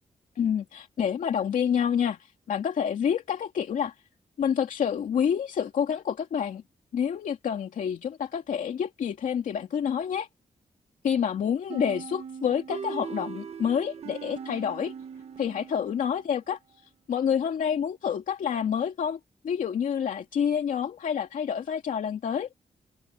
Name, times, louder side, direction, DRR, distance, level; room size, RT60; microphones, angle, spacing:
voice 1, 0.4-2.2 2.5-3.9 4.4-6.6 6.9-10.3 11.0-14.9 15.4-16.6 17.1-19.2 19.4-22.5, left 8 dB, 85° left, 2.5 m, -28 dB
sound 1, 11.7-16.4, right 6 dB, 55° right, 1.4 m, -40 dB
wide cardioid pair, 170°, 13 cm